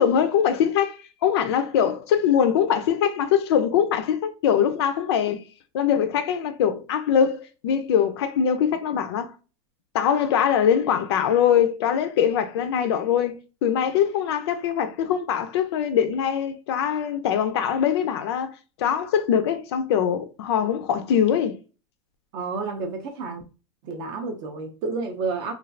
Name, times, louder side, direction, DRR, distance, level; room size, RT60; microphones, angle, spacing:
voice 1, 0.0-5.4 5.7-9.3 9.9-18.5 18.8-21.6, left 8 dB, 55° left, 0.4 m, -22 dB
voice 2, 22.3-23.4 23.8-25.5, right 4 dB, 30° right, 0.4 m, -30 dB
3.1 x 2.3 x 2.5 m
supercardioid pair, 170°, 16 cm